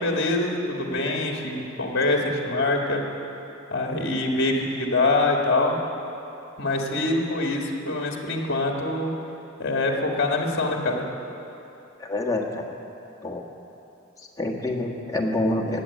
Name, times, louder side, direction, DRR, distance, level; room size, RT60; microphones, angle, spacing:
voice 1, 0.0-3.0 3.7-5.8 6.6-9.1 9.6-11.0, left 2 dB, 55° left, 1 dB, 1.9 m, -24 dB
voice 2, 12.0-12.7 13.2-13.4 14.2-15.8, left 2 dB, 15° left, 0 dB, 1.5 m, -27 dB
20.0 x 7.9 x 8.5 m, 2.9 s
head